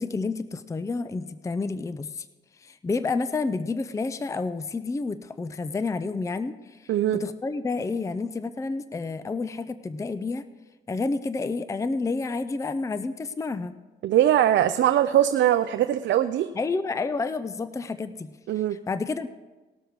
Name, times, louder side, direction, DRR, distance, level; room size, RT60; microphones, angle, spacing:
voice 1, 0.0-2.2 2.6-6.8 7.1-10.4 10.9-13.8 16.6-18.3 18.9-19.3, left 3 dB, 15° left, 13 dB, 0.5 m, -29 dB
voice 2, 6.9-7.2 14.0-16.5 18.5-18.8, right 11 dB, 65° right, 9 dB, 0.5 m, -21 dB
18.5 x 6.4 x 4.7 m, 1.2 s
cardioid pair, 90°, 20 cm